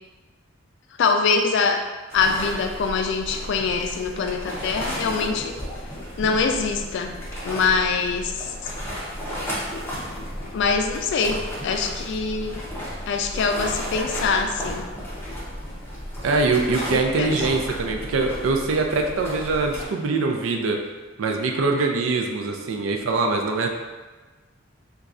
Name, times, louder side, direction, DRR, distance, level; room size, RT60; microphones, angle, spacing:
voice 1, 1.0-5.5 6.2-7.2 7.4-8.7 10.5-12.6 13.1-14.9 16.9-17.4, left 4 dB, 60° left, 5 dB, 0.3 m, -24 dB
sound 1, 2.1-19.9, equal, 10° left, 0.7 m, -33 dB
voice 2, 16.2-20.8 21.2-23.7, right 3 dB, 90° right, 3 dB, 0.4 m, -23 dB
4.0 x 2.3 x 2.4 m, 1.3 s
head